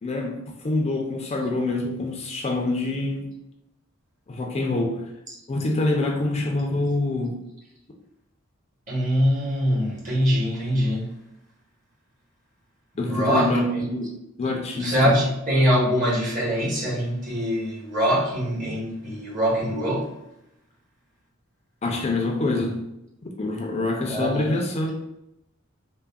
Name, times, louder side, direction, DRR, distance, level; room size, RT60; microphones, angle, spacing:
voice 1, 0.0-3.3 4.3-5.0 5.5-7.4 13.0-14.1 14.4-15.1 21.8-22.8 23.2-24.9, left 2 dB, 30° left, 1 dB, 0.3 m, -26 dB
voice 2, 8.9-11.1 13.1-13.8 14.8-20.1 24.1-24.5, equal, 40° right, -4 dB, 0.9 m, -23 dB
3.4 x 2.0 x 2.2 m, 0.83 s
head